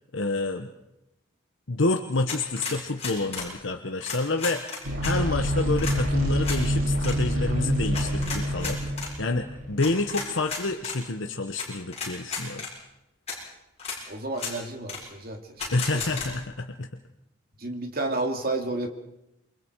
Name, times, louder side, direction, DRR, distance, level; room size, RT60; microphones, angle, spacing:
voice 1, 0.1-0.7 1.7-12.6 15.7-16.9, left 2 dB, 65° left, 5 dB, 1.1 m, -28 dB
sound 1, 2.3-3.5 4.0-5.1 5.8-6.0 6.4-6.6 7.0-7.2 7.9-9.1 9.8-11.0 11.6-11.7 11.9-12.7 13.3-13.4 13.8-14.0 14.3-14.5 14.9-15.0 15.6-16.3, left 5 dB, 30° left, 7.4 m, -33 dB
sound 2, 4.8-10.0, equal, 90° right, 5.4 m, -27 dB
voice 2, 14.1-15.4 15.9-16.0 17.6-18.9, right 2 dB, 45° right, 4 dB, 2.6 m, -30 dB
28.5 x 24.0 x 4.7 m, 0.88 s
head